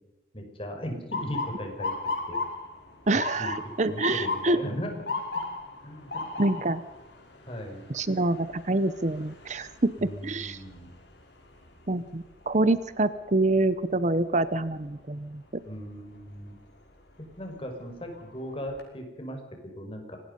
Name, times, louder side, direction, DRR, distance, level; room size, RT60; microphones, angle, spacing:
voice 1, 0.3-1.9 2.3-2.4 3.4-3.5 3.9-5.4 5.8-6.3 7.5-7.8 10.0-10.9 15.6-16.6 17.4-20.2, equal, 30° left, 4 dB, 5.4 m, -37 dB
Motor vehicle (road) / Siren, 1.1-13.0 13.5-13.9 14.7-15.0 16.9-17.1 17.6-17.7 18.1-18.8, left 3 dB, 75° left, 5.9 m, -37 dB
voice 2, 3.1-4.6 6.4-6.8 7.9-10.6 11.9-15.6, right 2 dB, 40° right, 14 dB, 0.8 m, -26 dB
25.5 x 19.5 x 5.4 m, 1.1 s
head